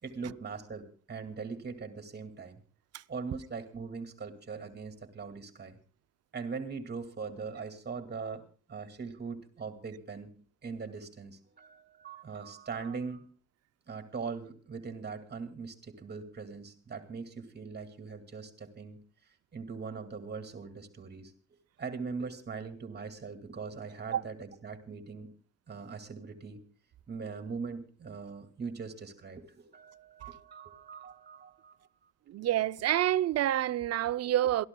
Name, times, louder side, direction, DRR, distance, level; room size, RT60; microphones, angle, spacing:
voice 1, 0.0-2.6 3.1-5.8 6.3-10.4 10.6-13.2 13.9-19.0 19.5-21.3 21.8-25.3 25.7-26.6 27.1-32.1, right 5 dB, 35° right, 2.3 m, -41 dB
voice 2, 32.3-34.7, right 12 dB, 55° right, 0.6 m, -28 dB
27.0 x 13.5 x 2.3 m
cardioid pair, 90°, 30 cm